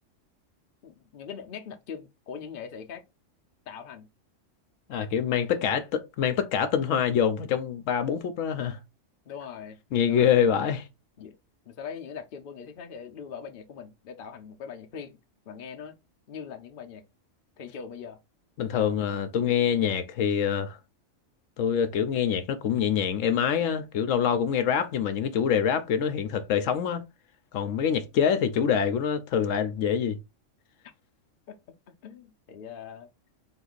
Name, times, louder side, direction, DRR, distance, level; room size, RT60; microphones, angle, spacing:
voice 1, 0.8-3.0 3.7-4.1 5.2-5.8 9.3-9.8 10.0-10.4 11.2-11.4 11.7-15.2 15.5-15.9 16.3-17.0 17.6-18.2 18.7-18.9 31.5-31.6 31.9-33.1, left 7 dB, 55° left, 0.7 m, -41 dB
voice 2, 4.9-8.8 9.9-10.9 18.6-20.8 21.6-27.0 27.5-30.2, left 8 dB, 75° left, 1.0 m, -25 dB
3.8 x 2.6 x 3.9 m
omnidirectional pair, 1.3 m